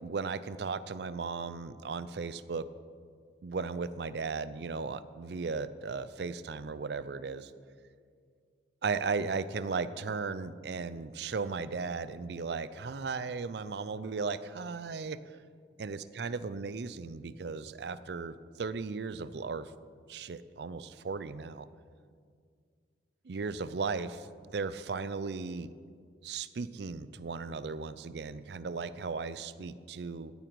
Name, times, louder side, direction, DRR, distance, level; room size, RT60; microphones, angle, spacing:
voice 1, 0.0-2.7 3.4-7.5 8.8-15.4 15.8-19.7 20.1-21.7 23.2-25.7 26.2-30.3, right 4 dB, 65° right, 15 dB, 0.5 m, -36 dB
15.5 x 8.9 x 4.7 m, 2.1 s
head